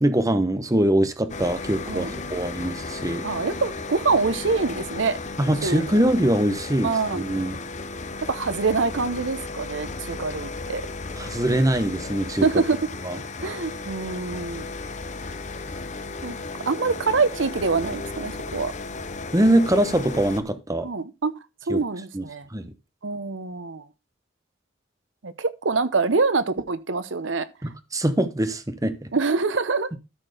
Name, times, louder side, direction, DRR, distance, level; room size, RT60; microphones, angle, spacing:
voice 1, 0.0-3.2 5.4-7.6 11.2-12.5 13.0-13.2 19.3-20.9 21.7-21.8 22.1-22.2 22.5-22.7 27.6-29.1, right 1 dB, 20° right, 1.0 m, -23 dB
sound 1, 1.3-20.4, left 3 dB, 40° left, 0.8 m, -35 dB
voice 2, 3.2-5.2 5.6-6.1 6.8-7.2 8.2-10.8 12.4-12.9 13.4-14.7 16.2-16.4 16.7-18.7 20.8-21.3 21.7-22.5 23.0-23.9 25.2-27.5 29.1-29.9, right 4 dB, 75° right, 0.9 m, -25 dB
13.0 x 4.6 x 5.0 m
head